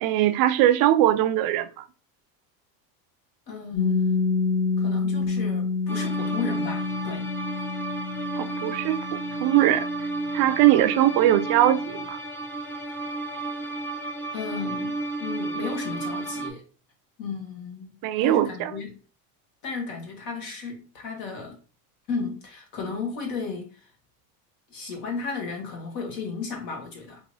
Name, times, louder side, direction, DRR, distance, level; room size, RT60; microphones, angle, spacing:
voice 1, 0.0-1.8 8.4-9.9 10.3-12.2 18.0-18.7, right 13 dB, 55° right, 0.5 m, -21 dB
voice 2, 3.5-4.3 4.8-7.3 14.3-16.6 17.2-17.9 18.2-19.0 19.6-21.6 22.1-23.8 24.7-27.2, left 5 dB, 60° left, 1.7 m, -34 dB
Piano, 3.7-11.0, left 4 dB, 30° left, 1.2 m, -28 dB
sound 1, 5.9-16.5, right 2 dB, 5° left, 0.5 m, -32 dB
4.0 x 2.9 x 2.7 m
supercardioid pair, 125°, 41 cm